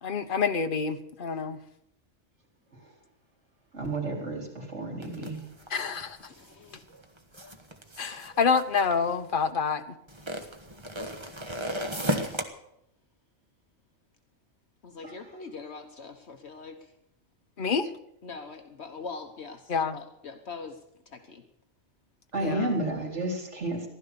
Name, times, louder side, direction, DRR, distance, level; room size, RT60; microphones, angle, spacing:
voice 1, 0.0-1.6 5.7-6.2 7.4-7.5 8.0-9.9 17.6-17.9 19.7-20.0 22.4-22.7, left 5 dB, 45° left, 8 dB, 1.2 m, -27 dB
voice 2, 3.7-5.4 15.0-15.1 22.3-23.9, right 2 dB, 70° right, 0 dB, 4.1 m, -31 dB
sound 1, 5.0-9.4 10.1-12.4, equal, 25° right, 1.4 m, -35 dB
voice 3, 6.3-6.9 14.8-16.9 18.2-21.4, left 4 dB, 65° left, 5 dB, 1.4 m, -43 dB
15.5 x 12.0 x 6.9 m, 0.77 s
omnidirectional pair, 1.2 m